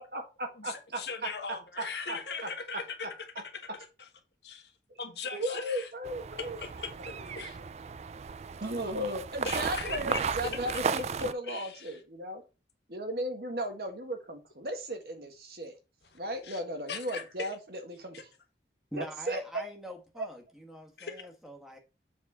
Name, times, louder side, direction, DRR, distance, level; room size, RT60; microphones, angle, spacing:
voice 1, 0.0-1.3 1.8-2.5 5.3-6.6 7.0-7.7 8.6-12.4 12.9-15.8 16.1-18.2 19.0-19.6 20.2-20.3, right 1 dB, 60° right, 1.6 m, -36 dB
voice 2, 0.6-3.1 4.4-4.7 5.0-5.9 6.4-7.6 9.4-10.5 11.5-12.0 16.4-16.6 16.9-17.5 18.1-18.2 21.0-21.3, left 5 dB, 75° left, 1.4 m, -39 dB
sound 1, 6.0-11.3, right 5 dB, 40° right, 0.3 m, -35 dB
voice 3, 18.9-21.8, equal, ahead, 1.3 m, -44 dB
7.1 x 4.2 x 4.8 m
head